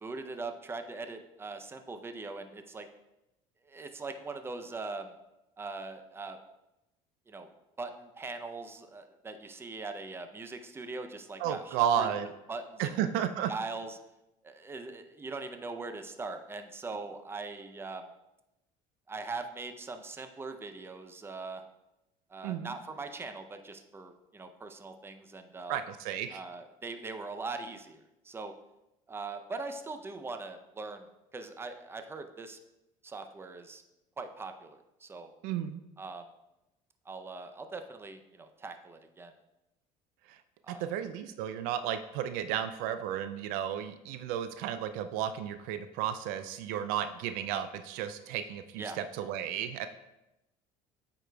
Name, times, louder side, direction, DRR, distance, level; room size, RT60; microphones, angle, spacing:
voice 1, 0.0-2.9 3.7-5.1 5.6-6.4 7.3-7.5 7.8-12.1 12.5-12.9 13.5-14.0 14.4-18.1 19.1-21.6 22.3-25.8 26.3-28.5 29.1-32.6 33.0-33.8 34.2-35.3 36.0-36.3 37.1-39.3 40.6-40.9 48.8-49.0, right 3 dB, 15° right, 7 dB, 0.5 m, -41 dB
voice 2, 11.4-12.3 12.8-13.5 22.4-22.7 25.7-26.4 35.4-35.8 40.3-40.4 40.8-49.9, right 9 dB, 80° right, 10 dB, 0.4 m, -33 dB
8.8 x 4.9 x 2.3 m, 0.92 s
supercardioid pair, 105°, 15 cm